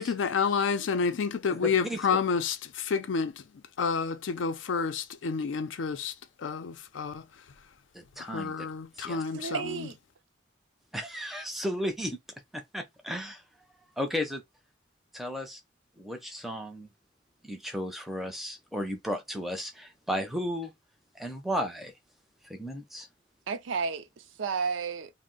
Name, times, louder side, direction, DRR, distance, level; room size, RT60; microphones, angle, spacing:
voice 1, 0.0-3.4 3.8-7.2 8.2-9.9, left 5 dB, 90° left, 0.4 m, -29 dB
voice 2, 1.5-2.0 7.9-8.7 9.0-9.2 10.9-12.2 12.5-13.4 14.0-14.4 15.1-15.6 16.0-16.9 17.4-20.7 21.2-21.9 22.5-23.1, equal, ahead, 0.5 m, -34 dB
voice 3, 9.3-10.0 23.5-25.1, right 5 dB, 85° right, 0.4 m, -32 dB
2.5 x 2.0 x 3.7 m
head